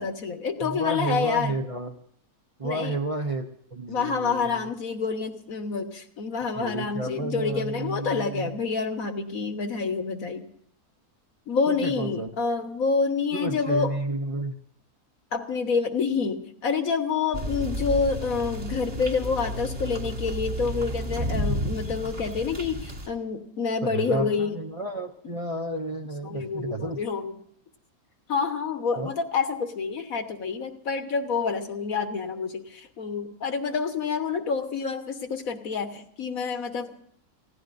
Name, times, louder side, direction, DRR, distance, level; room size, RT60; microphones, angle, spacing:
voice 1, 0.0-1.6 2.6-3.0 3.9-10.4 11.5-13.9 15.3-24.6 26.2-27.3 28.3-37.1, left 5 dB, 65° left, 7 dB, 1.7 m, -28 dB
voice 2, 0.6-2.0 2.6-4.7 6.6-8.5 11.7-12.3 13.3-14.5 23.8-27.0 29.0-29.1, right 2 dB, 30° right, 3 dB, 0.7 m, -31 dB
sound 1, 17.3-23.1, equal, 45° right, 2.9 m, -31 dB
28.5 x 16.5 x 2.6 m, 0.68 s
omnidirectional pair, 1.6 m